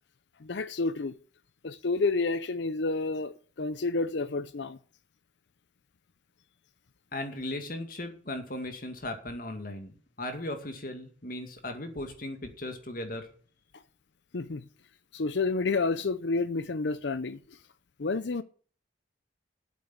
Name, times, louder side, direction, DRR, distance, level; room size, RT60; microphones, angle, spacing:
voice 1, 0.4-1.1 1.6-4.8 14.3-14.6 15.1-17.6 18.0-18.4, left 3 dB, 65° left, 0.6 m, -30 dB
voice 2, 7.1-9.9 10.2-13.3, left 1 dB, 45° left, 2.1 m, -37 dB
8.4 x 8.0 x 9.2 m
head